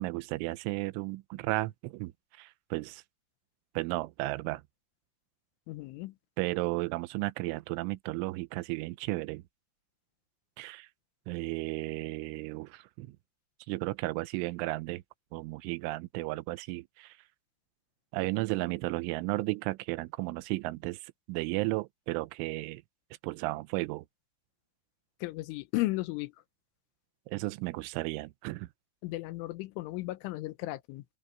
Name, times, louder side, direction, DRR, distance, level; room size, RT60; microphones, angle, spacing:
voice 1, 0.0-3.0 3.8-4.6 6.4-9.4 10.6-10.9 11.3-13.2 13.7-15.0 15.3-17.2 18.1-22.8 23.2-24.1 27.3-28.7, right 21 dB, 85° right, 3.2 m, -34 dB
voice 2, 5.7-6.2 25.2-26.4 29.0-31.1, left 19 dB, 85° left, 3.3 m, -35 dB
open air
omnidirectional pair, 5.5 m